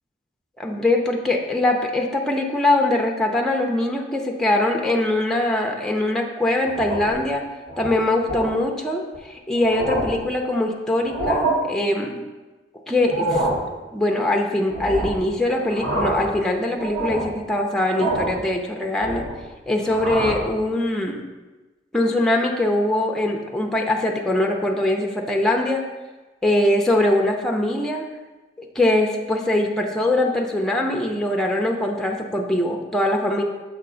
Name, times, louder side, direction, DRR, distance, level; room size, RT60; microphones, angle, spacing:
voice 1, 0.6-7.4 7.8-12.1 12.9-13.4 13.9-19.2 19.7-21.2 21.9-25.8 26.4-28.0 28.6-33.4, left 1 dB, 5° left, 1 dB, 0.5 m, -22 dB
sound 1, 6.7-7.2 7.7-7.9 8.3-8.5 9.1-9.2 9.5-10.2 11.0-11.6 13.0-13.7 14.7-15.3 15.6-16.4 16.8-17.4 18.0-18.4 18.8-19.5 19.8-20.5, right 2 dB, 85° right, 1.6 m, -26 dB
6.8 x 4.4 x 3.8 m, 1.2 s
head